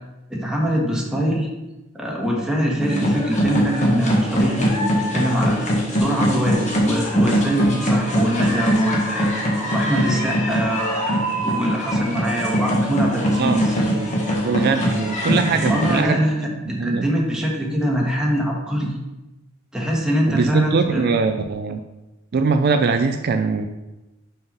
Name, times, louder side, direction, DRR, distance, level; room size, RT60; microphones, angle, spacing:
voice 1, 0.3-1.5 1.9-13.7 15.7-19.0 19.7-21.0, equal, 5° right, -2 dB, 1.3 m, -23 dB
sound 1, 2.8-16.0, equal, 35° left, 1.5 m, -22 dB
voice 2, 14.4-16.2 16.8-17.1 20.3-21.8 22.3-23.7, right 4 dB, 50° right, 7 dB, 0.4 m, -21 dB
5.6 x 5.5 x 5.5 m, 1.0 s
head